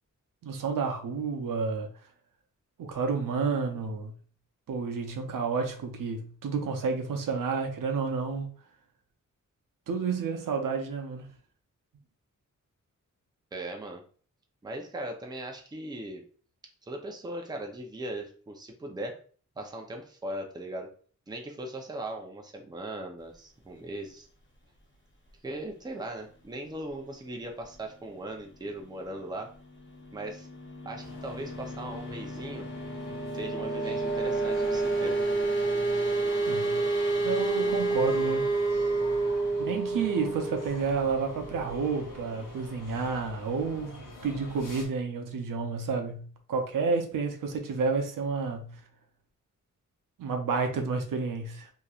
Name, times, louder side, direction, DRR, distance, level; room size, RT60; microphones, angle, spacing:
voice 1, 0.4-1.9 2.8-4.1 4.7-8.5 9.9-11.3 36.4-36.8 37.2-38.5 39.6-48.8 50.2-51.7, right 4 dB, 85° right, 0.6 m, -30 dB
voice 2, 13.5-14.0 14.6-16.2 16.8-19.2 19.6-20.9 21.3-24.3 25.4-29.5 30.1-30.5 30.9-32.7 33.3-35.2, right 1 dB, 15° right, 0.5 m, -38 dB
sound 1, 29.7-42.3, right 3 dB, 40° left, 0.6 m, -30 dB
sound 2, 31.0-44.9, left 1 dB, 75° left, 0.8 m, -46 dB
3.0 x 2.7 x 2.3 m
wide cardioid pair, 125°, 32 cm